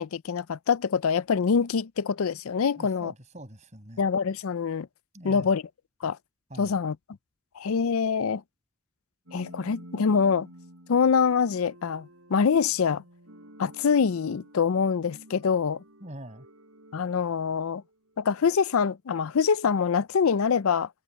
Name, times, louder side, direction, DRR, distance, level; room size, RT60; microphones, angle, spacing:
voice 1, 0.0-3.1 4.0-4.9 5.2-5.6 6.0-6.2 6.6-7.0 7.6-8.4 9.3-10.5 10.9-13.0 13.6-15.8 16.9-17.8 18.2-20.9, left 6 dB, 85° left, 0.5 m, -25 dB
voice 2, 2.8-4.1 5.1-5.5 6.5-6.8 16.0-16.5, right 1 dB, 35° right, 6.9 m, -44 dB
sound 1, 9.3-18.2, right 1 dB, 75° right, 6.0 m, -51 dB
head